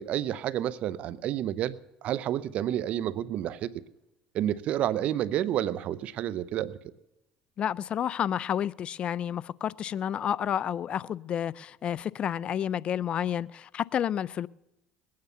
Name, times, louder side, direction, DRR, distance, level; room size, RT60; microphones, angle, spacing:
voice 1, 0.0-3.8 4.3-6.8, right 11 dB, 60° right, 0.7 m, -30 dB
voice 2, 7.6-14.5, left 9 dB, 45° left, 0.4 m, -30 dB
19.5 x 9.5 x 6.9 m
supercardioid pair, 85°, 3 cm